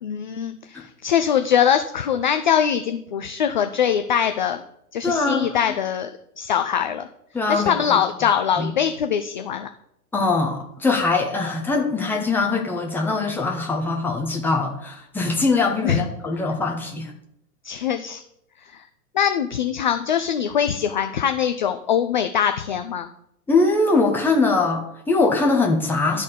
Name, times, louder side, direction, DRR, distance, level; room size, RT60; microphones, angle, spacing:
voice 1, 0.0-4.6 4.9-6.1 6.4-7.1 7.5-9.7 15.8-16.0 17.6-18.2 19.1-23.1, left 8 dB, 35° left, 7 dB, 0.4 m, -22 dB
voice 2, 5.0-5.6 7.3-8.0 8.6-8.7 10.1-17.1 23.5-26.2, left 3 dB, 5° left, 1 dB, 1.0 m, -22 dB
12.0 x 4.2 x 5.0 m, 0.78 s
figure-of-eight pair, 110°, 44 cm